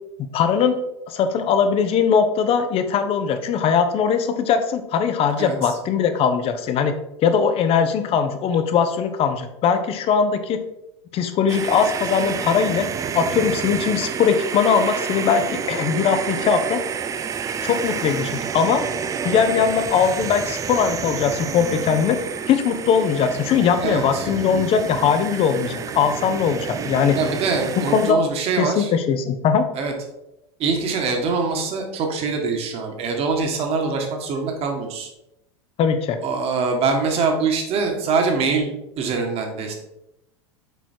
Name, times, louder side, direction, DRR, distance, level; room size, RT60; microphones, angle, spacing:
voice 1, 0.3-0.8 1.1-6.9 7.2-10.6 11.1-12.9 13.1-16.8 17.6-18.8 19.2-22.2 22.5-27.2 27.9-28.2 28.6-29.7 35.8-36.2, left 6 dB, 40° left, 9 dB, 0.9 m, -20 dB
sound 1, 11.5-28.1, right 7 dB, 20° right, 0.4 m, -29 dB
voice 2, 23.8-24.3 27.1-28.9 29.7-29.9 30.6-35.1 36.2-39.7, right 4 dB, 45° right, 3 dB, 1.7 m, -23 dB
6.9 x 4.5 x 4.5 m, 0.87 s
hypercardioid pair, 90°, 15 cm